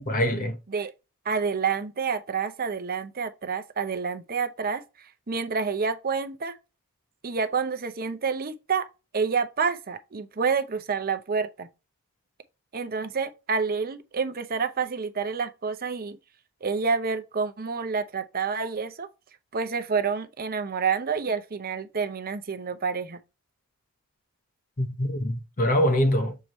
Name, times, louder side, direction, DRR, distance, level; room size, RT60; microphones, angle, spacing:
voice 1, 0.1-0.6 24.8-26.4, equal, 40° left, 1.0 m, -24 dB
voice 2, 1.2-6.6 7.2-8.9 9.1-11.7 12.7-16.2 16.6-19.1 19.5-23.2, right 5 dB, 40° right, 0.7 m, -28 dB
7.0 x 4.6 x 3.0 m
head